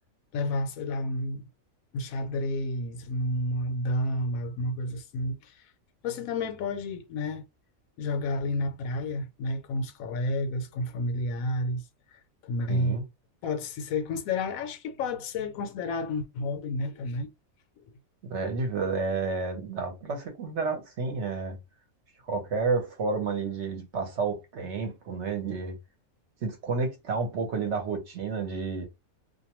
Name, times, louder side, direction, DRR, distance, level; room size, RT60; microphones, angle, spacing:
voice 1, 0.3-1.4 1.9-5.6 6.0-7.5 8.0-11.8 12.1-13.0 13.4-17.3, left 1 dB, 80° left, 1.0 m, -30 dB
voice 2, 12.7-13.0 18.2-21.6 22.2-25.8 26.4-28.9, right 4 dB, 60° right, 1.0 m, -30 dB
2.6 x 2.1 x 2.9 m
omnidirectional pair, 1.4 m